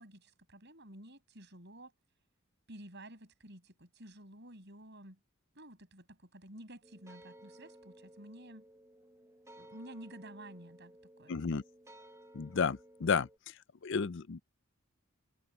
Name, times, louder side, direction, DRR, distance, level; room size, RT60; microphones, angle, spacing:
voice 1, 0.0-1.9 2.7-5.2 5.6-8.7 9.6-10.9 11.2-11.4, right 1 dB, 50° right, 6.8 m, -52 dB
sound 1, 6.8-13.4, right 1 dB, 15° right, 1.4 m, -57 dB
voice 2, 11.3-11.6 12.3-13.3 13.8-14.4, left 5 dB, 55° left, 0.5 m, -32 dB
head